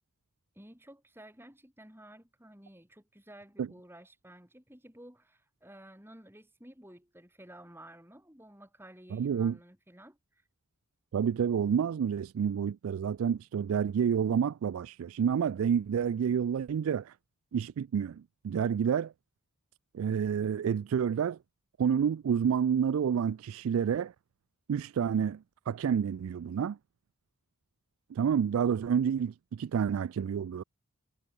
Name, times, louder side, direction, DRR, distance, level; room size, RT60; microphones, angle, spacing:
voice 1, 0.5-10.5, right 1 dB, 10° right, 6.0 m, -53 dB
voice 2, 9.1-9.6 11.1-17.1 17.5-19.1 19.9-21.4 21.8-24.1 24.7-26.8 28.1-30.6, right 7 dB, 75° right, 0.3 m, -29 dB
head